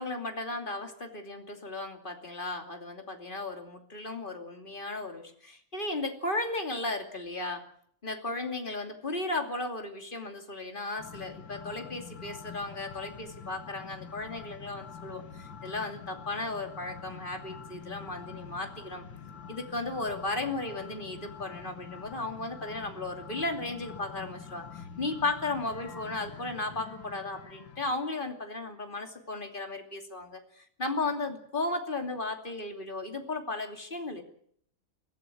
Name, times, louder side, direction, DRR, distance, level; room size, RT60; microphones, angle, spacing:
voice 1, 0.0-7.6 8.0-19.0 19.5-34.2, left 2 dB, 25° left, 5 dB, 2.8 m, -35 dB
sound 1, 11.0-27.9, left 7 dB, 75° left, 2.6 m, -46 dB
23.0 x 16.5 x 8.6 m, 0.64 s
omnidirectional pair, 2.1 m